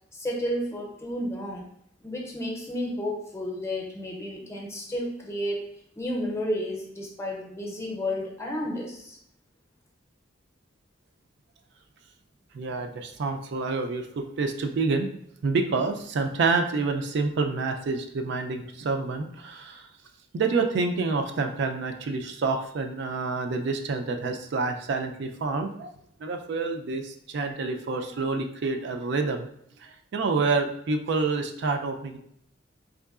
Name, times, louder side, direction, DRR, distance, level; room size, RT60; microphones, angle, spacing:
voice 1, 0.1-1.7 2.0-5.6 6.0-9.2, left 1 dB, 15° left, 0 dB, 0.6 m, -32 dB
voice 2, 12.5-15.1 15.4-19.9 20.3-25.9 26.2-29.5 29.8-32.2, right 4 dB, 60° right, 5 dB, 0.4 m, -28 dB
3.6 x 3.0 x 2.3 m, 0.69 s
head